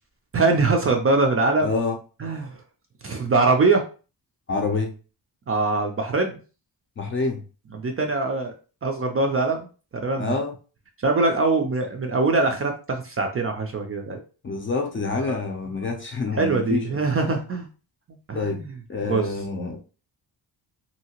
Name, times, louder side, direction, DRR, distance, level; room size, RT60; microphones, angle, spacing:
voice 1, 0.3-1.7 2.2-2.5 3.0-3.9 5.5-6.3 7.7-8.5 8.8-9.7 10.0-10.3 11.0-14.2 15.2-15.4 16.4-17.7 18.3-18.7 19.1-19.2, right 3 dB, 35° right, 3 dB, 0.4 m, -22 dB
voice 2, 1.6-2.0 4.5-4.9 7.0-7.4 10.1-10.5 14.4-17.0 18.3-18.6 18.9-19.8, left 3 dB, 30° left, 2 dB, 0.5 m, -27 dB
2.8 x 2.7 x 2.8 m, 0.35 s
wide cardioid pair, 155°, 43 cm